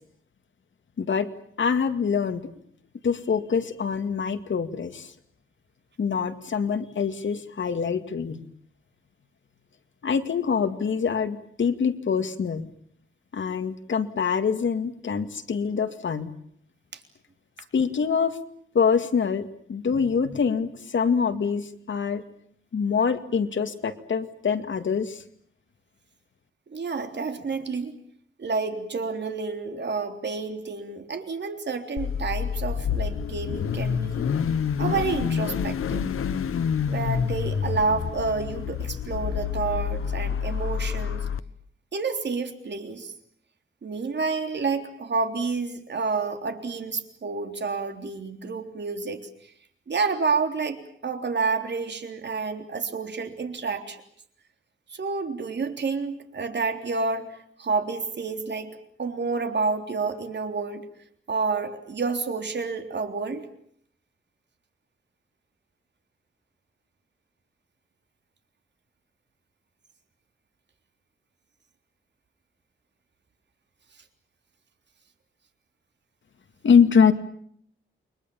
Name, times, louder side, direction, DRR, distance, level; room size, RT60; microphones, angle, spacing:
voice 1, 1.0-1.3 1.6-2.5 3.0-5.1 6.0-8.4 10.0-12.7 13.3-16.3 17.7-18.4 18.7-22.2 22.7-25.2 76.6-77.1, left 6 dB, 65° left, 8 dB, 2.2 m, -24 dB
voice 2, 26.7-28.0 28.4-34.3 34.8-36.1 36.9-41.3 41.9-43.1 43.8-49.3 49.9-54.0 54.9-60.9 61.3-63.5, right 4 dB, 55° right, 6 dB, 3.6 m, -29 dB
Car / Idling / Accelerating revving vroom, 32.0-41.4, left 7 dB, 85° left, 1.1 m, -28 dB
29.5 x 23.5 x 7.1 m, 0.64 s
wide cardioid pair, 115°, 21 cm